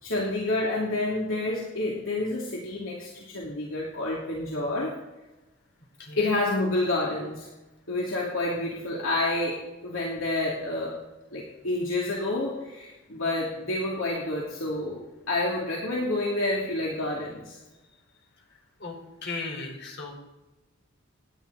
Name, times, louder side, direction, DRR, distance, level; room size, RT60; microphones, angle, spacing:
voice 1, 0.0-4.9 6.2-7.5 7.9-11.0 11.3-17.6, left 2 dB, 75° left, -4 dB, 3.0 m, -29 dB
voice 2, 19.2-20.1, left 3 dB, 60° left, 0 dB, 4.6 m, -36 dB
28.5 x 11.0 x 4.2 m, 1.1 s
head